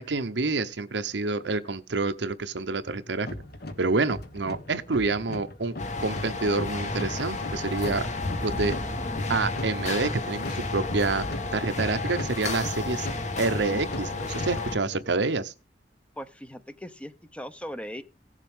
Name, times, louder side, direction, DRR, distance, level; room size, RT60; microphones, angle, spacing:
voice 1, 0.0-3.3 3.8-8.1 8.4-8.8 9.3-11.3 11.5-13.1 13.4-15.5, right 3 dB, 85° right, 0.8 m, -28 dB
sound 1, 3.2-15.1, left 1 dB, 60° left, 1.3 m, -39 dB
sound 2, 5.8-14.8, left 3 dB, 45° left, 1.3 m, -32 dB
voice 2, 16.2-18.0, equal, 5° left, 0.7 m, -39 dB
17.0 x 7.3 x 3.6 m
head